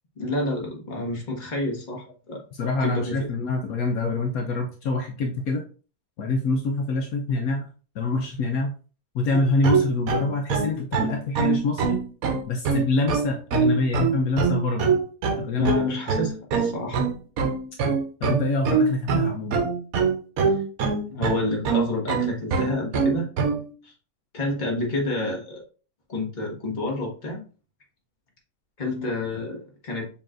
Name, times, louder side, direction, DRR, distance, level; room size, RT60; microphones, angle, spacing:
voice 1, 0.2-2.4 2.8-3.2 15.6-17.0 20.4-20.6 21.1-23.3 23.8-23.9 24.3-25.6 26.1-27.4 28.8-29.6 29.8-30.1, left 2 dB, 30° left, -1 dB, 1.3 m, -29 dB
voice 2, 2.5-5.6 6.2-7.7 7.9-8.7 9.1-12.0 12.5-14.9 15.4-15.7 18.2-19.7, left 3 dB, 70° left, 2 dB, 1.1 m, -25 dB
sound 1, 9.3-23.6, right 5 dB, 70° right, 1.2 m, -23 dB
6.9 x 3.1 x 2.5 m, 0.37 s
omnidirectional pair, 1.6 m